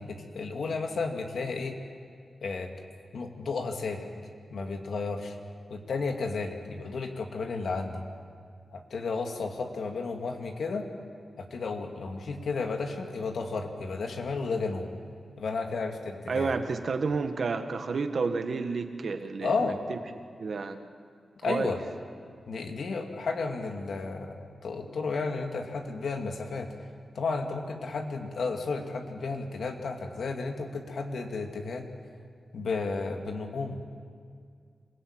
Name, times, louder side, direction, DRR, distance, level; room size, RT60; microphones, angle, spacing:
voice 1, 0.0-1.8 2.4-2.7 3.1-4.1 4.5-5.4 5.7-8.0 8.7-10.9 11.4-14.9 15.4-16.6 19.4-19.8 21.4-21.8 22.5-26.7 27.1-31.9 32.5-34.0, left 4 dB, 80° left, 3 dB, 2.3 m, -33 dB
voice 2, 16.3-20.0 20.4-20.8 21.5-21.7, right 4 dB, 65° right, 7 dB, 1.6 m, -30 dB
26.5 x 17.0 x 8.8 m, 2.2 s
wide cardioid pair, 105°, 0 cm